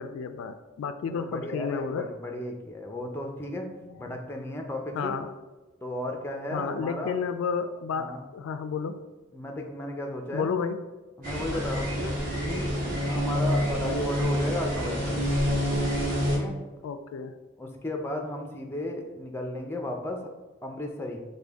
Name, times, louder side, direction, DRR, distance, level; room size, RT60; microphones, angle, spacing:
voice 1, 0.0-2.1 4.9-5.3 6.5-9.0 10.3-10.8 16.8-17.4, left 6 dB, 80° left, 10 dB, 0.3 m, -31 dB
voice 2, 1.1-3.7 4.0-5.2 5.8-7.2 7.9-8.2 9.3-10.5 11.2-12.2 12.4-12.7 13.1-15.2 16.3-16.6 17.6-20.2 20.6-21.2, left 1 dB, 10° left, 2 dB, 0.4 m, -34 dB
sound 1, 11.2-16.4, equal, 40° right, 1.4 m, -27 dB
5.1 x 2.2 x 3.4 m, 1.2 s
head